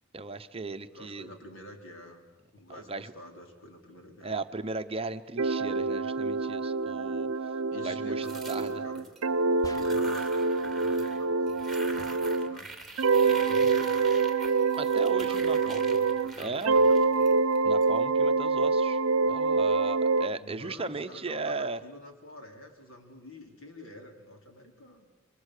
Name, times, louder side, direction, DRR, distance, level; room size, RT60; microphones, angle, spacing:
voice 1, 0.1-1.3 2.9-3.1 4.2-7.3 7.7-8.7 14.8-15.8 16.4-16.7 17.6-21.8, right 3 dB, 30° right, 8 dB, 0.8 m, -36 dB
voice 2, 0.9-2.2 2.5-4.4 7.7-9.1 9.6-10.3 10.6-12.7 13.3-14.1 15.2-17.3 20.4-25.1, left 1 dB, 65° left, 2 dB, 4.5 m, -48 dB
sound 1, 5.4-12.6 13.0-16.3 16.6-20.3, right 4 dB, 90° right, 0.7 m, -26 dB
sound 2, 8.2-9.2 9.7-11.2 11.5-17.8, right 2 dB, ahead, 2.8 m, -44 dB
sound 3, 9.6-10.4, left 1 dB, 20° left, 0.8 m, -46 dB
29.5 x 24.0 x 6.7 m, 1.2 s
head